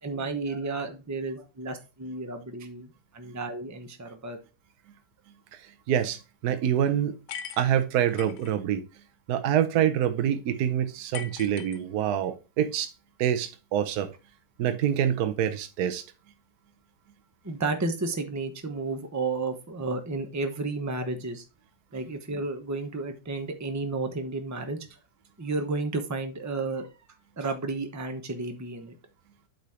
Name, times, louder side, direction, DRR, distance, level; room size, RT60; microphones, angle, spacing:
voice 1, 0.0-4.4 17.4-21.4 21.9-24.8 25.4-26.9 27.4-29.0, right 3 dB, 15° right, 0.6 m, -32 dB
voice 2, 5.9-7.1 7.6-8.8 9.3-12.9 13.2-14.1 14.6-16.0, right 10 dB, 70° right, 1.2 m, -26 dB
sound 1, 7.3-8.5 11.1-12.3, left 8 dB, 85° left, 1.4 m, -40 dB
8.2 x 4.1 x 4.3 m
omnidirectional pair, 1.8 m